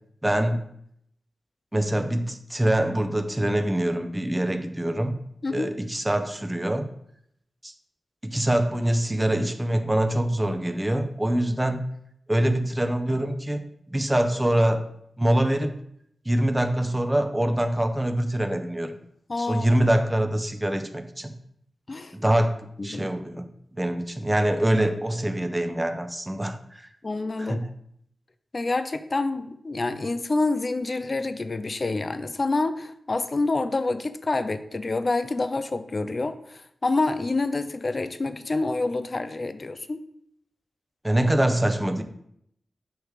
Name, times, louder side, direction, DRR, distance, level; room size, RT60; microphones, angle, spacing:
voice 1, 0.2-0.6 1.7-5.2 5.5-6.9 7.6-7.7 8.2-11.8 12.3-14.9 15.2-15.7 16.3-18.9 19.4-21.3 22.1-23.5 23.8-26.9 27.4-27.6 41.0-42.0, right 1 dB, 15° right, 8 dB, 0.5 m, -24 dB
voice 2, 19.3-19.8 21.9-22.2 22.8-23.1 27.0-27.7 28.5-40.0, left 3 dB, 45° left, 11 dB, 0.3 m, -27 dB
3.3 x 3.1 x 4.7 m, 0.71 s
cardioid pair, 50°, 0 cm